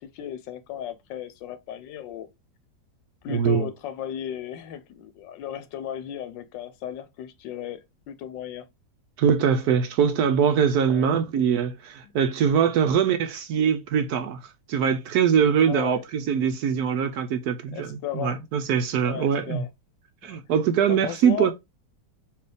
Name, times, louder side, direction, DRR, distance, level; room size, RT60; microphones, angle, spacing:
voice 1, 0.0-2.3 3.2-8.7 10.9-11.1 15.6-16.0 17.7-18.4 19.0-19.7 20.2-20.4 20.9-21.5, left 10 dB, 85° left, 1.3 m, -35 dB
voice 2, 3.3-3.7 9.2-14.4 14.7-19.6 20.2-21.5, right 7 dB, 70° right, 1.0 m, -22 dB
4.5 x 2.7 x 3.3 m
omnidirectional pair, 1.9 m